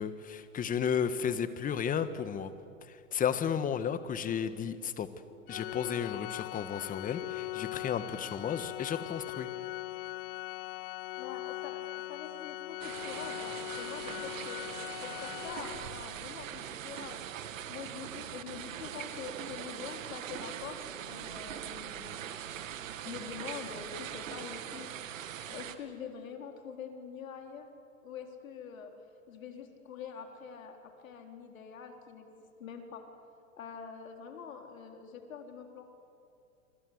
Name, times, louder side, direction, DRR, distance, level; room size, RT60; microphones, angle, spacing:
voice 1, 0.0-2.5 2.9-5.1 5.5-9.5, left 7 dB, 20° left, 12 dB, 1.5 m, -33 dB
Organ, 5.5-16.2, left 18 dB, 45° left, 0.6 m, -40 dB
voice 2, 11.2-14.6 15.0-17.2 17.7-22.3 23.0-24.9 25.5-27.7 28.0-28.9 29.3-33.0 33.6-35.8, left 7 dB, 75° left, 4 dB, 4.1 m, -45 dB
sound 1, 12.8-25.8, right 10 dB, 70° right, 2.1 m, -42 dB
27.5 x 25.0 x 8.1 m, 2.5 s
hypercardioid pair, 125°, 40 cm